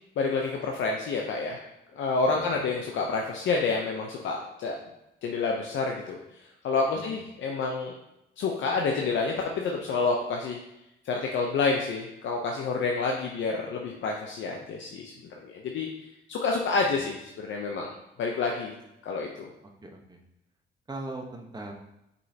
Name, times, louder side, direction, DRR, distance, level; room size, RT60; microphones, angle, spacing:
voice 1, 0.2-1.6 1.9-4.8 5.2-6.2 6.6-7.9 8.4-10.6 11.0-15.1 15.4-15.9 16.3-17.9 18.2-18.7 19.0-19.5, left 4 dB, 70° left, 1 dB, 0.7 m, -28 dB
voice 2, 2.2-2.6 6.9-7.2 16.9-17.1 19.8-20.2 20.9-21.7, right 2 dB, 20° right, 2 dB, 1.0 m, -40 dB
6.2 x 5.4 x 2.8 m, 0.87 s
cardioid pair, 90°, 20 cm